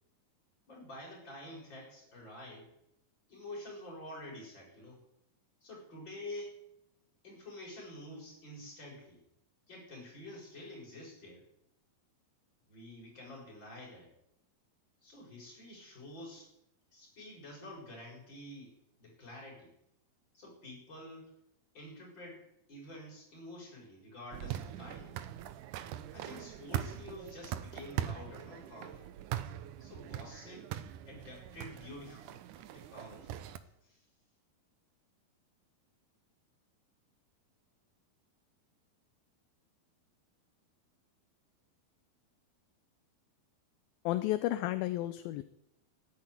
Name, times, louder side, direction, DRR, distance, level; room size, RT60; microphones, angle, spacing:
voice 1, 0.7-2.7 3.3-5.0 5.6-6.6 7.2-9.2 9.7-11.4 12.7-14.1 15.0-16.5 16.9-19.7 20.3-21.3 21.7-25.2 26.1-29.1 29.8-30.7 31.1-33.3 33.8-34.0, left 1 dB, 25° left, -2 dB, 7.0 m, -48 dB
sound 1, 24.3-33.6, right 11 dB, 75° right, 1.9 m, -41 dB
voice 2, 44.1-45.4, left 15 dB, 80° left, 11 dB, 2.4 m, -32 dB
13.5 x 10.5 x 9.6 m, 0.79 s
omnidirectional pair, 4.5 m